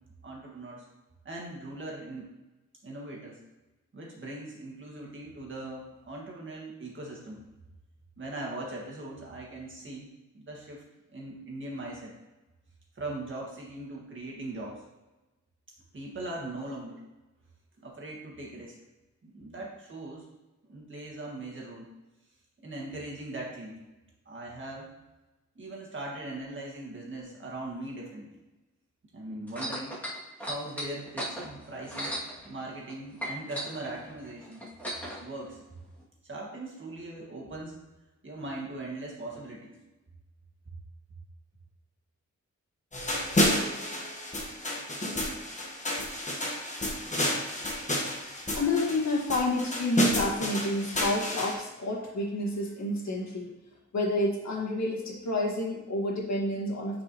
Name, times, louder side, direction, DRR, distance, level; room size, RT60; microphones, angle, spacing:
voice 1, 0.2-0.9 1.3-2.3 2.8-3.4 3.9-7.4 8.2-10.1 10.3-10.8 11.1-12.1 13.0-14.8 15.9-17.0 17.8-18.7 19.2-20.3 20.7-21.9 22.6-23.8 24.3-24.9 25.6-28.3 29.1-30.0 30.4-32.2 32.4-34.6 35.2-35.6 36.2-37.8 38.2-39.8, right 2 dB, 40° right, -3 dB, 1.9 m, -40 dB
sound 1, 29.5-32.9 33.2-35.2 36.0-36.1, equal, 5° left, 2.4 m, -36 dB
sound 2, 42.9-51.5, left 1 dB, 25° left, 1.3 m, -30 dB
voice 2, 48.5-53.5 53.9-57.0, left 1 dB, 65° left, -2 dB, 1.8 m, -29 dB
9.6 x 4.8 x 3.0 m, 1.1 s
wide cardioid pair, 145°, 30 cm